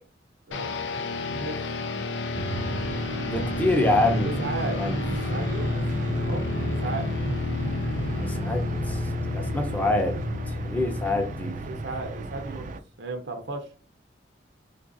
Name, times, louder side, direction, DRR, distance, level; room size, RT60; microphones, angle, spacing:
sound 1, 0.5-12.7, left 3 dB, 90° left, 0.4 m, -31 dB
voice 1, 0.5-1.6 4.2-4.8 5.3-5.8 6.1-6.4 6.8-7.1 9.1-9.4 11.7-13.7, right 3 dB, 80° right, 0.7 m, -35 dB
sound 2, 2.3-12.8, right 2 dB, 45° right, 0.4 m, -34 dB
voice 2, 3.3-4.4 4.8-5.0 8.2-9.0 9.3-10.2 10.5-11.5, left 2 dB, 10° left, 0.6 m, -26 dB
3.8 x 2.5 x 2.5 m
head